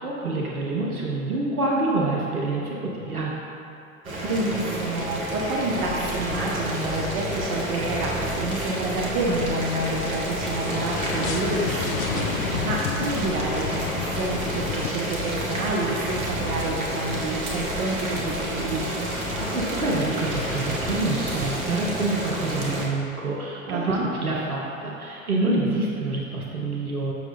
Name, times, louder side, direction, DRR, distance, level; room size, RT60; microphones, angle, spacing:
voice 1, 0.0-3.3 19.4-27.1, right 2 dB, 85° right, -3 dB, 0.8 m, -27 dB
Boiling, 4.0-22.9, right 1 dB, 70° right, 1.2 m, -30 dB
voice 2, 4.2-12.3 12.6-18.8 23.7-24.1, right 2 dB, 30° right, -2 dB, 0.6 m, -29 dB
sound 1, 5.4-21.7, left 2 dB, 5° left, 0.8 m, -36 dB
sound 2, 6.8-14.9, left 8 dB, 70° left, 0.5 m, -33 dB
6.7 x 6.0 x 2.6 m, 2.7 s
figure-of-eight pair, 90°, 43 cm